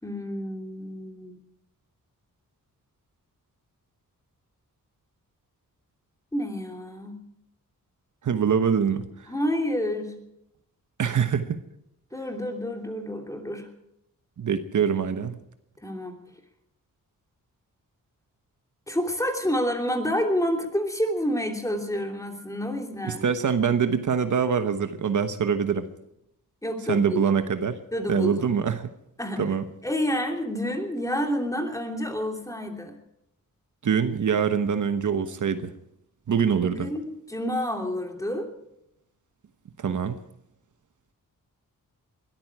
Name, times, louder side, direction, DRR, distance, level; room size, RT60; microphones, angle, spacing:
voice 1, 0.0-1.3 6.3-7.2 9.3-10.1 12.1-13.7 15.8-16.1 18.9-23.2 26.6-27.2 27.9-28.5 29.2-29.4 29.8-32.9 36.6-38.5, equal, 10° left, 3 dB, 3.0 m, -29 dB
voice 2, 8.2-9.1 11.0-11.6 14.4-15.4 23.0-25.9 26.9-27.8 28.1-28.9 29.4-29.6 33.8-35.7 36.3-36.9 39.8-40.2, right 7 dB, 60° right, 9 dB, 1.1 m, -24 dB
21.0 x 13.5 x 4.8 m, 0.80 s
wide cardioid pair, 105°, 34 cm